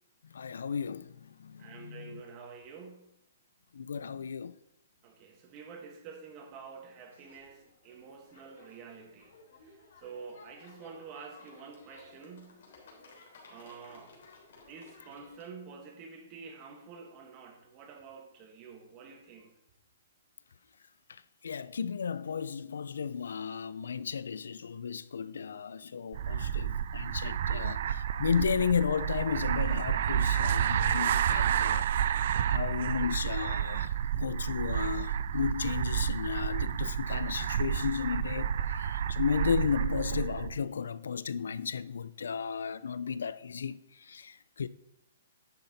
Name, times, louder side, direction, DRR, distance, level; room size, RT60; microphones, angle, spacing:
voice 1, 0.2-2.2 3.7-4.5 21.1-31.9 32.5-44.7, left 6 dB, 90° left, 0.4 m, -34 dB
voice 2, 1.6-3.1 5.0-9.3 9.6-12.6 13.5-14.1 14.7-19.5, right 5 dB, 25° right, 1.3 m, -48 dB
sound 1, 7.1-15.4, left 3 dB, 65° left, 3.3 m, -57 dB
sound 2, 26.1-40.6, right 9 dB, 55° right, 0.4 m, -30 dB
10.5 x 5.8 x 4.1 m
hypercardioid pair, 160°, 0 cm